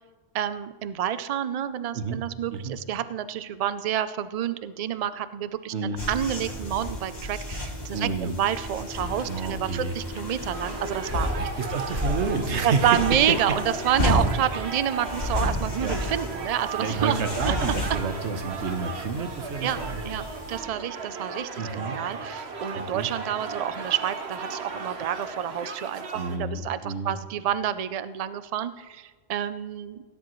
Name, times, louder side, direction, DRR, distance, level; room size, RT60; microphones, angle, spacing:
voice 1, 0.3-11.3 12.6-17.7 19.6-19.8 20.0-20.2 20.5-30.0, right 10 dB, 50° right, 13 dB, 0.5 m, -28 dB
voice 2, 5.7-6.0 7.9-8.4 9.3-9.9 11.4-13.0 14.5-14.7 15.8-16.0 16.8-20.2 21.6-22.0 22.7-23.1 26.1-27.2, right 4 dB, 85° right, 7 dB, 1.3 m, -30 dB
sound 1, 6.0-20.6, left 1 dB, 75° left, 3.5 m, -32 dB
sound 2, 10.5-26.4, right 4 dB, 70° right, 1.3 m, -36 dB
17.0 x 10.0 x 3.1 m, 1.4 s
omnidirectional pair, 1.1 m